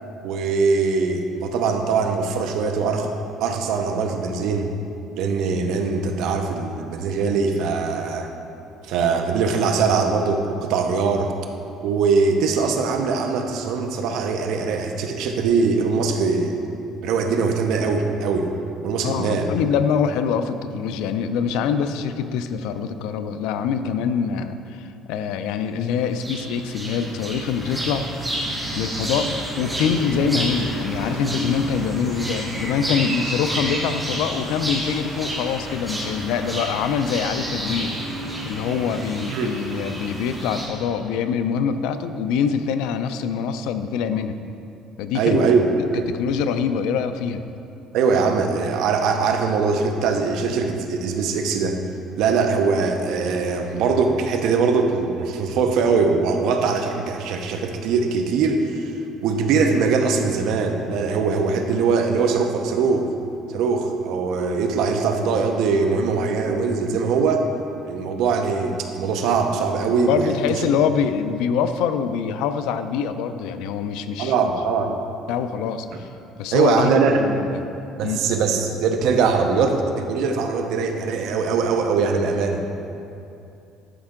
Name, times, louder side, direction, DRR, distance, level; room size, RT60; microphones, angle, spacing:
voice 1, 0.2-3.1 3.4-4.7 5.2-8.3 8.8-11.3 11.8-16.5 17.0-18.5 18.8-19.5 39.3-39.5 45.1-46.1 47.9-51.8 52.2-58.9 59.2-63.1 63.5-67.4 67.8-70.2 74.2-74.9 76.5-77.2 78.0-82.6, right 5 dB, 65° right, 4 dB, 0.7 m, -21 dB
voice 2, 19.0-28.1 28.7-37.9 38.4-44.4 45.0-45.4 46.1-47.4 70.1-74.5 74.9-75.0 75.3-76.1 76.4-77.7 78.0-78.2, left 7 dB, 85° left, 10 dB, 0.4 m, -24 dB
sound 1, 26.2-40.6, right 1 dB, 5° right, 1.3 m, -29 dB
11.5 x 4.4 x 3.7 m, 2.7 s
cardioid pair, 160°, 0 cm